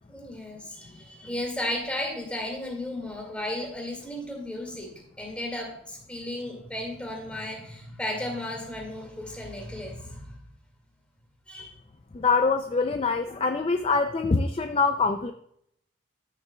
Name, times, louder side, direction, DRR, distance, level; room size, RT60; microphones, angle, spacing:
voice 1, 0.1-10.4 11.5-11.8, left 1 dB, 5° left, 1 dB, 1.9 m, -34 dB
voice 2, 12.1-15.3, left 4 dB, 30° left, 7 dB, 0.3 m, -24 dB
13.5 x 6.6 x 2.2 m, 0.71 s
head